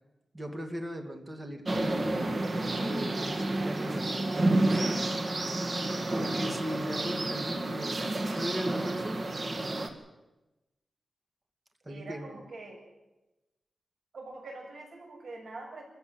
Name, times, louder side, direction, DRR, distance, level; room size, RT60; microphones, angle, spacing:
voice 1, 0.3-2.3 2.7-4.8 5.5-5.6 6.1-9.2 11.8-12.4, equal, 20° right, 4 dB, 2.4 m, -38 dB
sound 1, 1.7-9.9, right 2 dB, 40° right, 2.2 m, -30 dB
voice 2, 11.9-12.8 14.1-15.8, right 3 dB, 70° right, 1 dB, 7.2 m, -45 dB
26.5 x 14.5 x 8.0 m, 1.0 s
wide cardioid pair, 145°, 0 cm